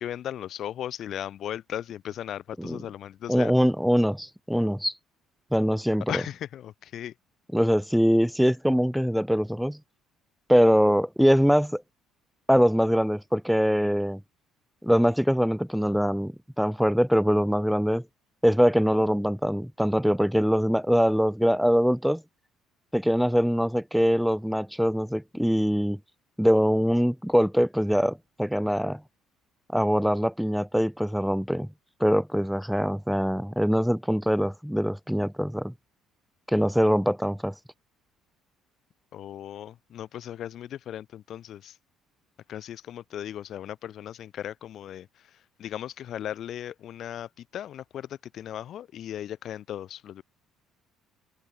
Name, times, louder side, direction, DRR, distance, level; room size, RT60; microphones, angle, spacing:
voice 1, 0.0-3.5 6.1-7.1 39.1-41.8 42.5-50.2, left 11 dB, 50° left, 3.6 m, -37 dB
voice 2, 3.3-5.0 5.5-6.2 7.5-9.8 10.5-11.8 12.5-14.2 14.8-18.0 18.4-22.2 22.9-26.0 26.4-29.0 29.7-31.7 32.0-35.7 36.5-37.6, equal, ahead, 1.4 m, -23 dB
cardioid pair, 140°, 0 cm